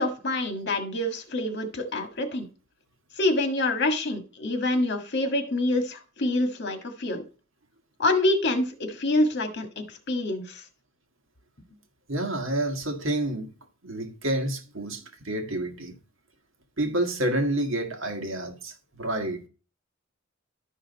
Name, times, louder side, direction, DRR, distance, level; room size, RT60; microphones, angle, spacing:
voice 1, 0.0-2.5 3.2-7.2 8.0-10.6, left 2 dB, 60° left, 1.6 m, -26 dB
voice 2, 12.1-13.5 13.8-16.0 16.8-19.5, right 1 dB, 75° right, 1.7 m, -29 dB
11.5 x 5.6 x 4.0 m
head